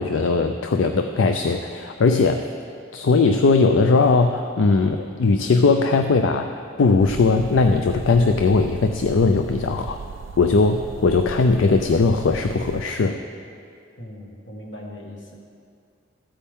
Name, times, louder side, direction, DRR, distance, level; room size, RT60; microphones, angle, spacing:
voice 1, 0.0-2.5 2.9-6.5 6.8-10.0 10.4-13.2, left 4 dB, 90° left, 6 dB, 0.4 m, -19 dB
sound 1, 7.0-12.8, right 5 dB, 75° right, 0.3 m, -37 dB
voice 2, 14.0-15.4, left 1 dB, 70° left, -1 dB, 1.7 m, -39 dB
14.5 x 8.6 x 3.6 m, 2.3 s
head